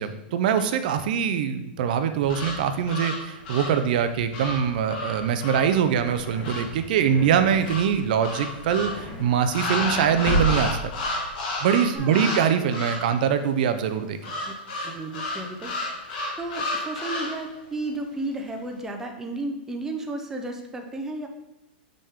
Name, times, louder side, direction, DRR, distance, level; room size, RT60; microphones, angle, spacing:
voice 1, 0.0-10.7 11.6-14.2, right 8 dB, 55° right, 9 dB, 0.5 m, -23 dB
sound 1, 2.2-6.8 7.6-9.0 9.5-12.4 12.7-13.2 14.2-17.5, left 2 dB, 55° left, 1.7 m, -32 dB
sound 2, 5.9-12.0, right 1 dB, 30° left, 1.4 m, -33 dB
voice 2, 11.9-12.3 14.5-14.6 14.8-15.7 16.4-21.3, right 2 dB, 10° right, 3 dB, 0.5 m, -33 dB
5.5 x 5.1 x 3.6 m, 0.92 s
supercardioid pair, 155°, 6 cm